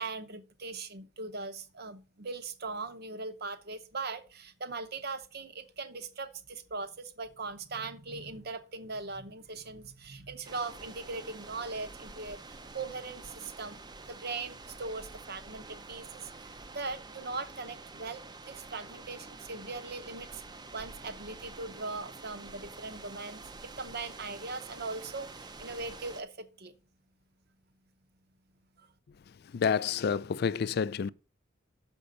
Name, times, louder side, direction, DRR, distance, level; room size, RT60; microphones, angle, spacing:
voice 1, 0.0-13.8 14.1-18.2 18.5-20.4 20.7-23.4 23.8-26.7, right 3 dB, 50° right, 0.9 m, -40 dB
sound 1, 10.4-26.2, right 3 dB, 20° right, 0.6 m, -48 dB
voice 2, 29.5-31.1, left 6 dB, 50° left, 0.3 m, -29 dB
6.8 x 5.3 x 6.4 m
head